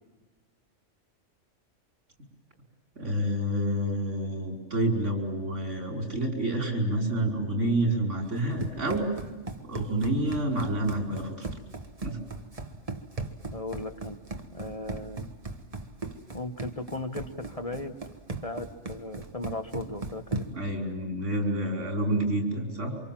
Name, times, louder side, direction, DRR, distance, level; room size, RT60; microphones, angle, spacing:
voice 1, 3.0-11.5 12.0-12.2 20.5-23.0, right 1 dB, 75° right, 2 dB, 5.5 m, -28 dB
Run, 8.3-20.7, right 3 dB, 30° right, 1.5 m, -38 dB
voice 2, 13.5-14.2 14.5-15.3 16.3-18.0 18.4-20.4, left 2 dB, 30° left, 6 dB, 1.4 m, -36 dB
28.5 x 26.0 x 7.5 m, 1.2 s
omnidirectional pair, 1.2 m